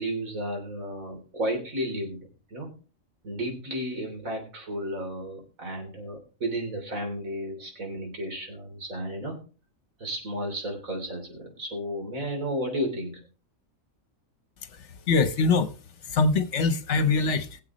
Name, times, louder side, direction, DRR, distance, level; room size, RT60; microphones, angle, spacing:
voice 1, 0.0-2.7 3.2-9.4 10.0-13.2, equal, 80° right, 3.8 m, -33 dB
voice 2, 14.7-15.7 16.1-17.6, left 4 dB, 60° left, 1.2 m, -23 dB
21.5 x 7.6 x 3.1 m
omnidirectional pair, 1.4 m